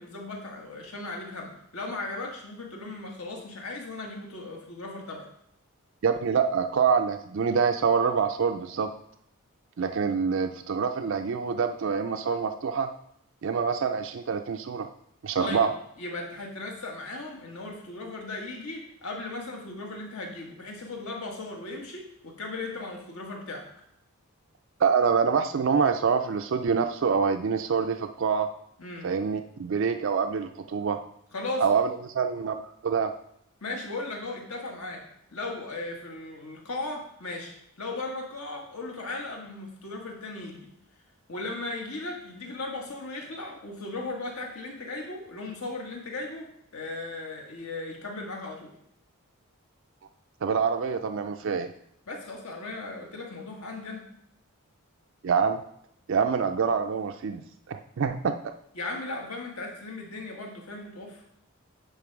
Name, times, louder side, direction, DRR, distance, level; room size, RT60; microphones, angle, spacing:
voice 1, 0.0-5.3 15.4-15.7 16.0-23.7 28.8-29.1 31.3-31.7 33.6-35.0 35.3-40.7 41.3-48.7 52.1-54.1 58.7-61.2, left 2 dB, 70° left, 0 dB, 1.7 m, -37 dB
voice 2, 6.0-8.9 9.8-12.9 13.4-14.9 15.2-15.7 24.8-28.5 29.0-31.0 31.6-33.1 50.4-51.7 55.2-55.6 56.1-57.4 57.7-58.5, right 6 dB, 55° right, 6 dB, 0.4 m, -26 dB
9.8 x 3.8 x 4.7 m, 0.73 s
head